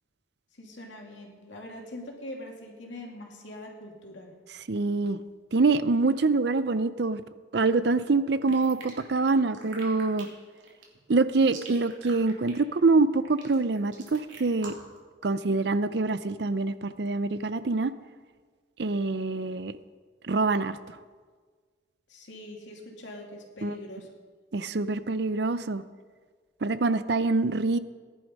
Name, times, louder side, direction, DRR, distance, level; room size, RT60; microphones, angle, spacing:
voice 1, 0.6-4.4 22.1-24.1, left 1 dB, 80° left, 1 dB, 2.5 m, -43 dB
voice 2, 4.7-5.2 5.5-7.2 7.5-10.3 11.1-14.7 15.2-17.9 18.8-19.7 20.2-20.8 23.6-23.7 24.5-25.8 26.6-27.8, right 3 dB, 60° right, 13 dB, 0.6 m, -25 dB
sound 1, 8.5-15.0, right 4 dB, 80° right, 3.0 m, -45 dB
17.0 x 11.0 x 5.2 m, 1.5 s
head